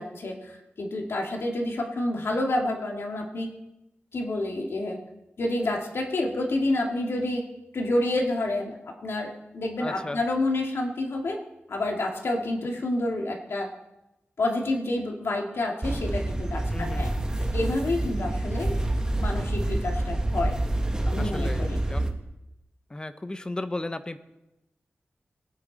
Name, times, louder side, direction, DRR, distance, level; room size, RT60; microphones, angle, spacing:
voice 1, 0.0-3.5 4.1-5.0 5.4-7.4 7.7-8.8 9.0-11.4 11.7-13.7 14.4-17.1 17.5-18.8 19.2-20.6 21.0-21.8, left 2 dB, 75° left, 1 dB, 2.1 m, -28 dB
voice 2, 9.8-10.2 16.7-17.1 21.2-22.2 22.9-24.2, left 2 dB, 20° left, 10 dB, 0.7 m, -35 dB
sound 1, 15.8-22.1, right 1 dB, 15° right, 1.2 m, -27 dB
20.5 x 9.5 x 4.1 m, 0.93 s
wide cardioid pair, 130°, 4 cm